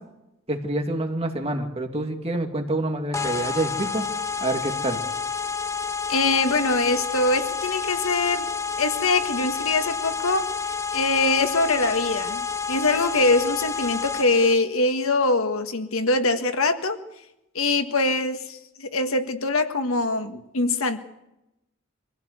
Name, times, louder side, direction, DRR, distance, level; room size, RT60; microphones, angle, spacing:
voice 1, 0.5-4.0 4.4-5.0, right 2 dB, 30° right, 4 dB, 2.5 m, -27 dB
sound 1, 3.1-14.5, left 5 dB, 15° left, 0.8 m, -29 dB
voice 2, 6.1-8.5 8.8-10.5 10.9-17.0 17.5-21.0, left 3 dB, 75° left, 8 dB, 1.6 m, -23 dB
24.0 x 15.5 x 8.2 m, 0.91 s
head